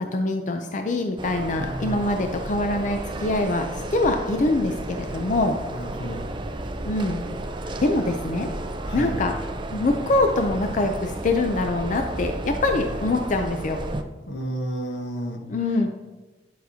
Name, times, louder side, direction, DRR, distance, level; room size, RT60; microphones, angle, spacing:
voice 1, 0.1-5.6 6.9-7.3 7.8-8.5 8.9-9.3 9.7-13.8 15.5-15.9, left 2 dB, 45° left, 5 dB, 0.5 m, -24 dB
sound 1, 1.2-14.0, right 1 dB, 25° right, 0.5 m, -32 dB
voice 2, 1.6-2.0 5.2-5.3 5.7-6.3 7.6-7.8 8.8-9.2 14.3-15.4, right 1 dB, 85° left, 3 dB, 1.1 m, -32 dB
10.0 x 5.7 x 2.8 m, 1.2 s
head